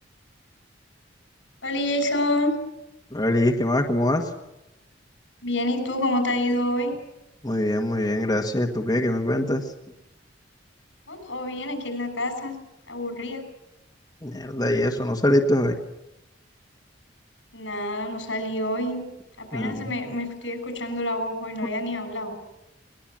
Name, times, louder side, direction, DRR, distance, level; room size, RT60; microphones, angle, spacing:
voice 1, 1.6-2.5 5.4-6.9 11.1-12.6 12.9-13.4 17.5-19.0 19.4-22.4, left 1 dB, 80° left, 9 dB, 6.2 m, -27 dB
voice 2, 3.1-4.3 7.4-9.7 14.2-15.7 19.5-19.8, left 1 dB, 20° left, 2 dB, 1.7 m, -23 dB
22.5 x 20.5 x 7.5 m, 0.93 s
head